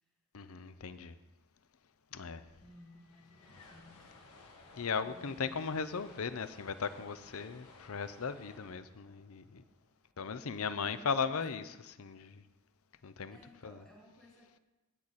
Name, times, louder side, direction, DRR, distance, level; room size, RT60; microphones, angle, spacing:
voice 1, 0.3-1.2 2.1-2.4 4.7-9.6 10.2-12.4 13.0-13.4 13.6-13.8, left 5 dB, 70° left, 0.6 m, -37 dB
sound 1, 2.0-2.1 2.3-10.5, left 3 dB, 85° left, 1.6 m, -58 dB
voice 2, 2.6-4.1 10.5-11.7 13.3-14.6, left 1 dB, 5° left, 2.0 m, -58 dB
17.0 x 6.4 x 4.2 m
head